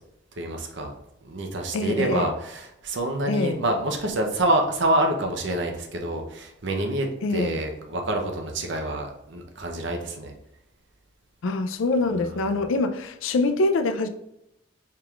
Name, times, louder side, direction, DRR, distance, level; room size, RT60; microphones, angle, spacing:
voice 1, 0.4-0.9 1.2-10.3 12.3-12.4, right 1 dB, 60° right, 3 dB, 0.7 m, -27 dB
voice 2, 1.7-2.3 3.3-3.6 7.2-7.6 11.4-14.1, left 2 dB, 80° left, 7 dB, 0.4 m, -24 dB
4.5 x 3.5 x 2.3 m, 0.82 s
head